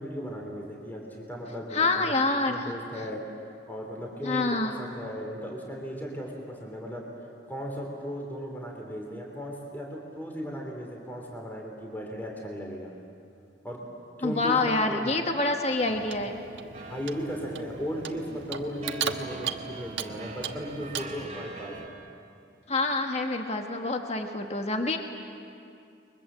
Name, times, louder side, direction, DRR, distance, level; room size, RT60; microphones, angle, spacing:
voice 1, 0.0-2.1 2.5-3.2 3.7-4.5 4.8-7.0 7.5-12.9 13.6-13.8 14.2-15.3 16.9-21.7, equal, 10° left, -1 dB, 3.2 m, -36 dB
voice 2, 1.7-2.7 4.2-4.7 14.2-16.3 22.7-25.0, left 3 dB, 35° left, 4 dB, 1.5 m, -27 dB
Clock, 15.8-21.3, right 7 dB, 80° right, 1.4 m, -37 dB
sound 1, 16.7-21.9, right 3 dB, 35° right, 2.6 m, -44 dB
30.0 x 23.0 x 7.5 m, 2.5 s
head